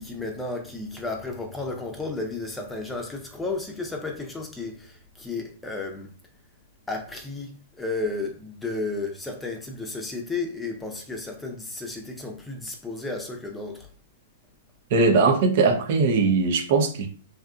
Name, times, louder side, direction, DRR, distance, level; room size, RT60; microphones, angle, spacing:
voice 1, 0.0-6.1 6.9-13.9, left 3 dB, 10° left, 0.6 m, -33 dB
voice 2, 14.9-17.1, right 4 dB, 55° right, 0.7 m, -20 dB
2.7 x 2.4 x 2.4 m
hypercardioid pair, 125°, 0 cm